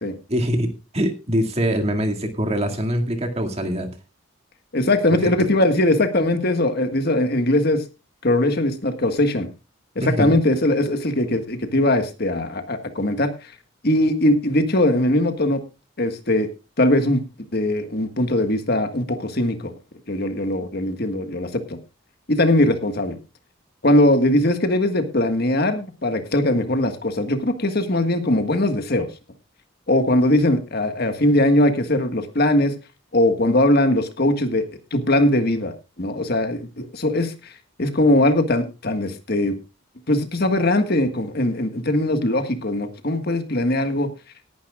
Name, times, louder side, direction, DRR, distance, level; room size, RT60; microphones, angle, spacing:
voice 1, 0.3-3.9 5.1-5.2 10.0-10.4, equal, 30° right, 4 dB, 2.2 m, -23 dB
voice 2, 4.7-7.8 8.2-9.5 9.9-13.5 13.8-15.6 16.0-16.5 16.8-17.2 17.5-19.7 20.1-21.8 22.3-23.2 23.8-29.1 29.9-32.7 33.1-34.6 34.9-37.5 37.8-39.5 40.1-44.1, left 1 dB, 50° left, 8 dB, 1.6 m, -20 dB
18.5 x 11.0 x 2.4 m, 0.29 s
head